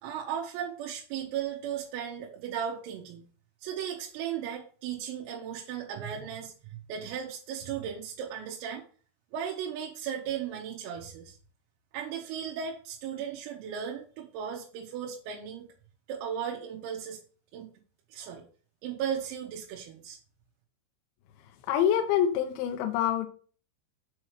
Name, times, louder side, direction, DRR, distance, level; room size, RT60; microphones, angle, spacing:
voice 1, 0.0-3.3 3.6-8.8 9.3-11.4 11.9-15.7 16.1-17.2 17.5-17.7 18.1-18.5 18.8-20.2, right 8 dB, 90° right, -2 dB, 3.8 m, -36 dB
voice 2, 21.7-23.3, left 9 dB, 80° left, 6 dB, 2.8 m, -26 dB
8.4 x 3.1 x 6.4 m, 0.42 s
omnidirectional pair, 5.9 m